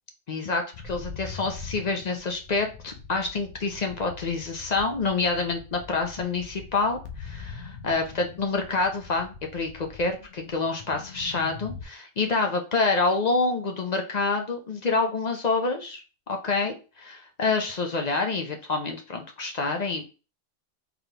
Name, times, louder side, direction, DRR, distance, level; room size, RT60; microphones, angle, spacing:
voice 1, 0.3-16.0 16.3-20.1, left 3 dB, 45° left, 4 dB, 0.6 m, -27 dB
sound 1, 0.7-11.9, left 5 dB, 70° left, 1.0 m, -43 dB
3.9 x 3.3 x 2.8 m, 0.33 s
omnidirectional pair, 1.3 m